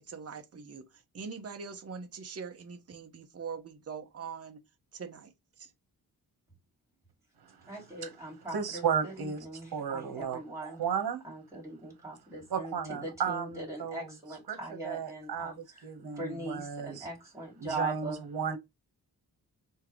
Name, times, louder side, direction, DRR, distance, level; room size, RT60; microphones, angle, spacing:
voice 1, 0.0-4.6 4.9-5.7, right 5 dB, 40° right, 0.9 m, -43 dB
voice 2, 7.6-10.8 11.2-18.2, right 2 dB, 10° right, 2.8 m, -41 dB
voice 3, 8.5-9.4 9.7-11.2 12.5-14.1 14.5-14.6 14.8-15.5 15.8-17.1 17.6-18.6, right 7 dB, 80° right, 1.4 m, -34 dB
4.5 x 3.4 x 3.1 m
wide cardioid pair, 110°, 37 cm